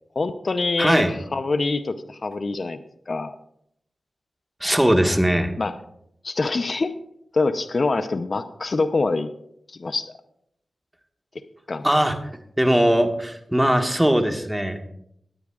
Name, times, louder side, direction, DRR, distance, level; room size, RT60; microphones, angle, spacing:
voice 1, 0.2-1.1 1.3-2.8 3.1-3.4 5.6-5.7 6.2-6.9 7.3-9.3 9.7-10.1 11.7-11.8, left 3 dB, 55° left, 10 dB, 0.6 m, -24 dB
voice 2, 0.8-1.1 4.6-5.5 11.8-12.1 12.6-14.8, equal, 10° right, 5 dB, 1.5 m, -20 dB
18.5 x 9.2 x 2.4 m, 0.73 s
cardioid pair, 50°, 0 cm